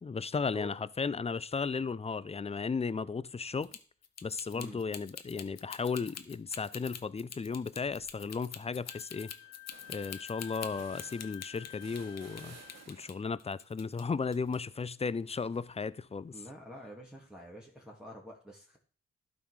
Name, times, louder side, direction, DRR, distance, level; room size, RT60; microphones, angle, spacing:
voice 1, 0.0-3.8 4.2-9.3 9.9-12.6 12.9-16.3, left 5 dB, 20° left, 0.5 m, -35 dB
sound 1, 3.6-12.4 12.7-14.0 14.3-14.6, left 8 dB, 60° left, 0.9 m, -45 dB
sound 2, 7.8-8.2 8.6-8.7 9.0-13.4 13.8-15.9, right 5 dB, 65° right, 1.3 m, -57 dB
Wind instrument woodwind instrument, 8.9-12.9, left 18 dB, 90° left, 0.5 m, -50 dB
voice 2, 16.3-18.8, equal, 5° right, 2.0 m, -47 dB
12.0 x 4.1 x 4.8 m
supercardioid pair, 40°, 29 cm